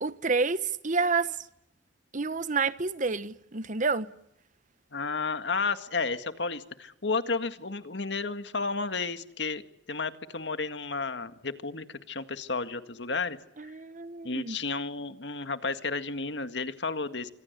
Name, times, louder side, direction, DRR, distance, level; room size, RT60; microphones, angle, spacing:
voice 1, 0.0-1.4 2.1-4.1 13.6-14.6, right 4 dB, 45° right, 1.2 m, -29 dB
voice 2, 4.9-9.6 9.9-13.4 13.6-13.7 14.2-17.3, left 4 dB, 70° left, 1.9 m, -32 dB
26.5 x 26.0 x 8.2 m
head